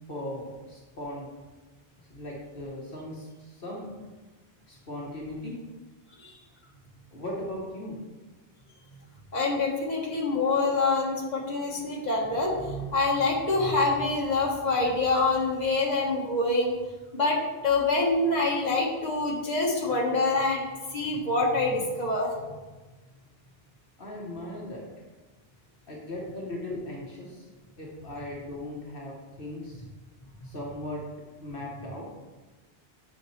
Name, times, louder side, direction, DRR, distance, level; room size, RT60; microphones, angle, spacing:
voice 1, 0.1-1.3 2.0-3.9 4.7-5.6 7.1-8.0 24.0-24.9 25.9-27.5 27.8-29.8 30.4-31.0 31.4-32.1, left 1 dB, 60° left, -3 dB, 1.4 m, -38 dB
voice 2, 9.3-16.7 17.1-17.4 17.6-22.5, left 3 dB, 45° left, -2 dB, 1.5 m, -26 dB
8.8 x 6.4 x 3.2 m, 1.2 s
omnidirectional pair, 1.0 m